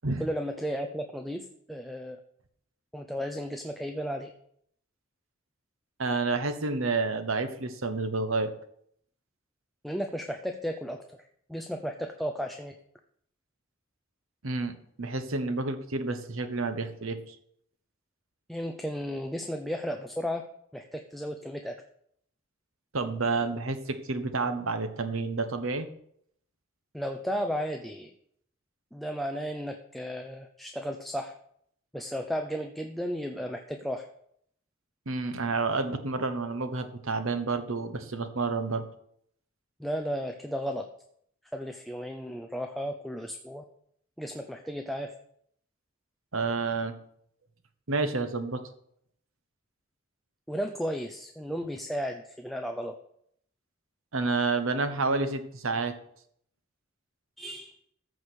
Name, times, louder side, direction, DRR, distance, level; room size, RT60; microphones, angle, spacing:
voice 1, 0.2-2.2 2.9-4.3 9.8-11.2 11.5-12.7 18.5-20.4 20.7-21.7 26.9-28.1 28.9-31.3 31.9-34.1 39.8-40.9 41.5-43.6 44.2-45.1 50.5-52.9 57.4-57.7, equal, ahead, 3 dB, 0.6 m, -34 dB
voice 2, 6.0-8.5 14.4-17.3 22.9-25.9 35.1-38.8 46.3-46.9 47.9-48.6 54.1-55.9, right 3 dB, 75° right, 9 dB, 1.2 m, -29 dB
14.0 x 4.9 x 6.2 m, 0.68 s
head